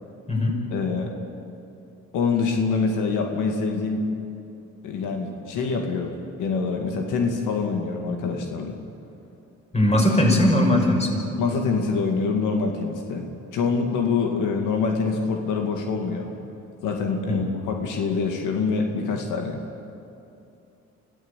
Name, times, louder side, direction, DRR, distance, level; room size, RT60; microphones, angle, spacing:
voice 1, 0.7-1.1 2.1-4.0 4.8-8.7 11.4-13.3 13.5-16.4 16.8-19.6, left 4 dB, 90° left, 3 dB, 2.2 m, -25 dB
voice 2, 9.7-11.2 17.3-17.6, left 1 dB, 20° left, 1 dB, 5.8 m, -20 dB
26.0 x 15.5 x 8.3 m, 2.7 s
cardioid pair, 90°, 30 cm